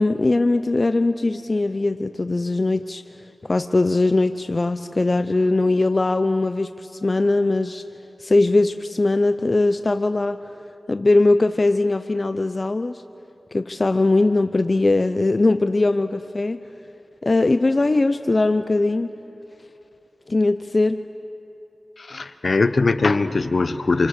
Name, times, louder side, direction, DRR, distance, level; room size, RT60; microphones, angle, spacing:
voice 1, 0.0-3.0 3.4-7.8 8.2-10.4 10.9-13.0 13.5-16.6 17.2-19.1 20.3-21.0, left 2 dB, 45° left, 10 dB, 0.7 m, -20 dB
voice 2, 22.0-24.1, left 3 dB, 65° left, 11 dB, 1.0 m, -21 dB
28.5 x 27.5 x 6.7 m, 3.0 s
cardioid pair, 50°, 0 cm